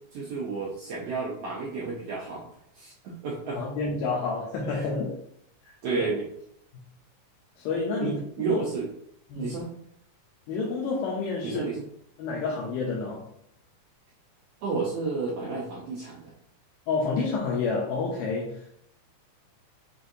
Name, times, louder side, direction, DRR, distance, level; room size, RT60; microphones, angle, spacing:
voice 1, 0.1-2.4 2.7-3.6 4.7-4.9 5.8-6.2 8.0-8.9 9.4-9.7 11.4-11.8 14.6-16.3, right 4 dB, 85° right, -4 dB, 1.3 m, -31 dB
voice 2, 3.6-5.2 7.6-8.2 8.5-8.6 9.3-9.6 10.5-11.6 12.2-13.3 16.9-18.6, left 4 dB, 90° left, -3 dB, 2.3 m, -29 dB
6.0 x 2.5 x 2.6 m, 0.71 s
omnidirectional pair, 3.6 m